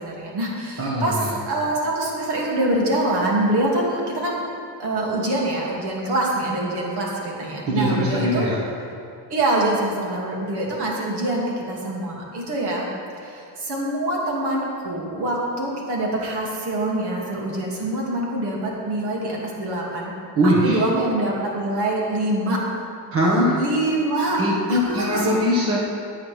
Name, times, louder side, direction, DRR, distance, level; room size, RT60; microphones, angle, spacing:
voice 1, 0.0-4.5 4.8-8.5 9.3-12.9 13.2-20.1 20.4-22.6 23.6-24.4 24.7-25.4, right 1 dB, 75° right, -3 dB, 2.4 m, -25 dB
voice 2, 0.8-1.3 7.7-8.6 20.3-20.8 23.1-23.6 24.4-25.8, equal, 35° right, -5 dB, 1.5 m, -21 dB
15.5 x 9.3 x 3.4 m, 2.5 s
cardioid pair, 175°, 40 cm